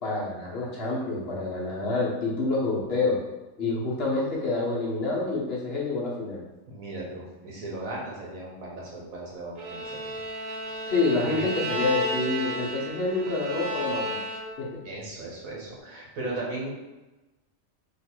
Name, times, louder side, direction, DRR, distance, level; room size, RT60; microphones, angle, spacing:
voice 1, 0.0-3.2 3.6-6.4 10.9-14.2 14.6-14.7, left 3 dB, 50° left, -4 dB, 1.1 m, -27 dB
voice 2, 6.7-10.2 11.2-11.4 14.8-16.7, right 2 dB, 85° right, -4 dB, 1.5 m, -37 dB
Bowed string instrument, 9.6-14.7, equal, 45° right, 0.7 m, -33 dB
3.0 x 3.0 x 4.3 m, 1.1 s
omnidirectional pair, 1.4 m